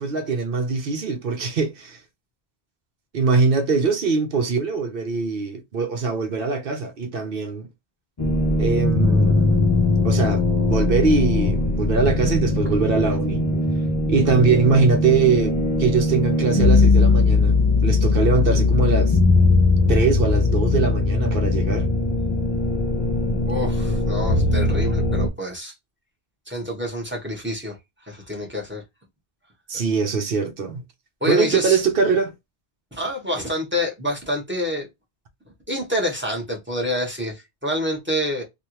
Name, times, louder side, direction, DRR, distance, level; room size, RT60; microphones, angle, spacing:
voice 1, 0.0-2.0 3.1-7.7 8.6-9.7 10.0-13.4 14.1-19.2 19.9-21.9 29.7-30.8 31.3-32.3, right 4 dB, 65° right, 0.9 m, -22 dB
sound 1, 8.2-25.3, left 3 dB, 35° left, 0.4 m, -20 dB
voice 2, 23.5-25.7 26.5-27.8 28.1-28.8 29.7-29.8 31.2-31.8 32.9-34.9 35.7-38.4, equal, 10° right, 1.2 m, -27 dB
3.4 x 2.4 x 2.9 m
omnidirectional pair, 1.1 m